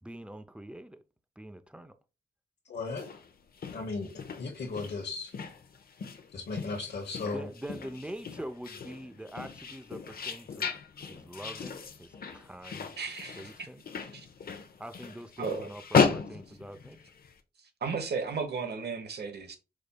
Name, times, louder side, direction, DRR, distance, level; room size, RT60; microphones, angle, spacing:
voice 1, 0.0-1.0 1.4-1.9 7.2-10.8 11.1-12.9 13.4-13.8 14.8-17.0, right 1 dB, 5° right, 0.5 m, -44 dB
voice 2, 2.7-3.1 3.7-4.1 4.4-5.3 6.3-7.5, left 3 dB, 75° left, 1.0 m, -36 dB
sound 1, 2.9-17.3, left 5 dB, 60° left, 0.7 m, -35 dB
voice 3, 13.0-13.7 14.1-14.3 15.4-15.7 17.8-19.6, right 5 dB, 70° right, 1.0 m, -34 dB
5.0 x 4.1 x 2.2 m
wide cardioid pair, 90°, 18 cm